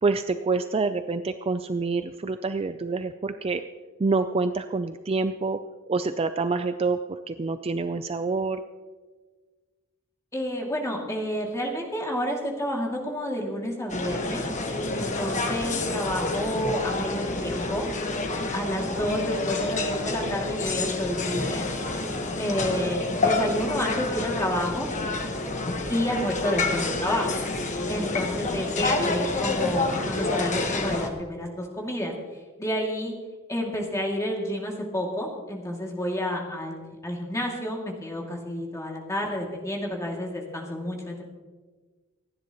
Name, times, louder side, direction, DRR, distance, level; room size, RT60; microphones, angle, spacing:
voice 1, 0.0-3.6 4.0-5.6 5.9-8.6, right 3 dB, 25° right, 9 dB, 0.4 m, -27 dB
voice 2, 10.3-14.4 14.9-17.9 18.5-21.7 22.4-24.9 25.9-27.3 27.9-32.1 32.6-33.1 33.5-41.2, equal, 15° left, -1 dB, 2.4 m, -30 dB
sound 1, 13.9-31.1, left 2 dB, 35° left, 1.3 m, -28 dB
27.0 x 10.0 x 3.0 m, 1.4 s
head